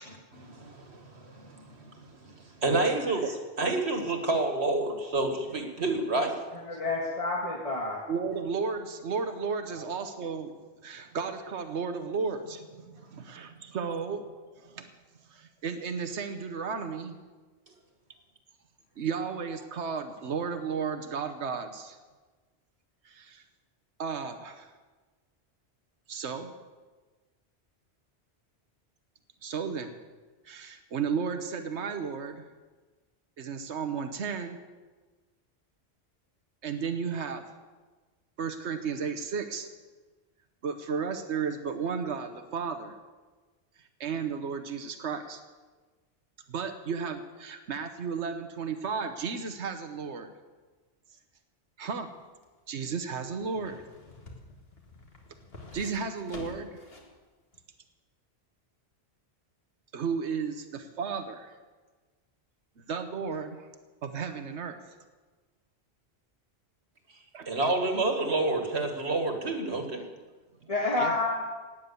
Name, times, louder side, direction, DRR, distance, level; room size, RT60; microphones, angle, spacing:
voice 1, 0.5-2.3 2.6-3.2 3.6-6.3 67.5-70.0, right 2 dB, 70° right, 4 dB, 2.2 m, -29 dB
voice 2, 6.5-8.0 9.8-9.9 70.7-71.3, left 3 dB, 30° left, -2 dB, 1.8 m, -29 dB
voice 3, 8.1-10.6 10.8-14.9 15.2-17.2 19.0-22.0 23.0-23.4 24.0-24.7 26.1-26.5 29.4-30.0 30.4-32.5 33.4-34.6 36.6-37.5 38.4-39.7 40.6-43.0 43.8-45.4 46.5-50.3 51.8-52.2 52.7-53.9 55.7-56.8 59.9-61.6 62.8-63.7 64.0-64.8 67.3-67.6 71.0-71.1, right 5 dB, 90° right, 8 dB, 1.3 m, -34 dB
sound 1, 52.1-57.2 57.5-57.6, left 2 dB, 60° left, 2.3 m, -48 dB
17.5 x 9.6 x 6.9 m, 1.3 s
omnidirectional pair, 1.1 m